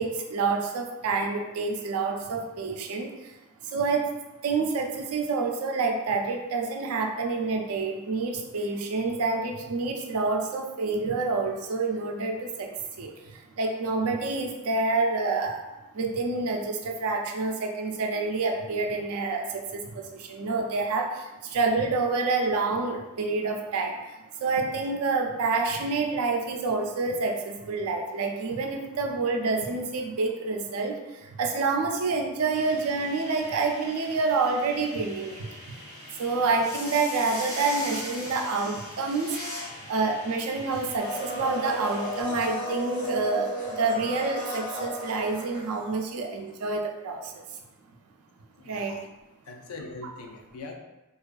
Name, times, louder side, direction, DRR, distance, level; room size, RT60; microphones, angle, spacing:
voice 1, 0.0-3.3 3.6-4.1 4.4-12.7 13.0-15.6 15.9-35.5 36.2-39.6 39.9-47.4 48.6-49.0, right 3 dB, 90° right, 2 dB, 0.4 m, -28 dB
sound 1, 32.5-42.2, left 1 dB, 70° left, 0.9 m, -41 dB
Domestic sounds home sounds, 41.0-46.2 46.5-46.6, equal, 20° left, 0.7 m, -34 dB
voice 2, 48.6-49.0 49.5-50.7, left 3 dB, 90° left, 2 dB, 0.4 m, -41 dB
2.3 x 2.3 x 2.4 m, 1.1 s
head